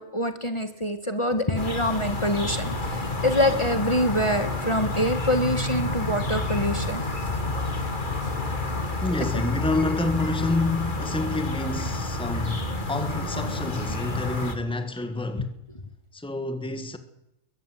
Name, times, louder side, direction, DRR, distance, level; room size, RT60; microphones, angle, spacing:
voice 1, 0.0-7.0 15.4-15.5, left 1 dB, 25° left, 1.6 m, -25 dB
sound 1, 1.6-14.6, left 2 dB, 40° left, 2.3 m, -29 dB
voice 2, 3.2-3.6 9.0-15.5 16.1-17.0, left 2 dB, 5° left, 1.6 m, -29 dB
22.0 x 14.0 x 10.0 m
omnidirectional pair, 1.3 m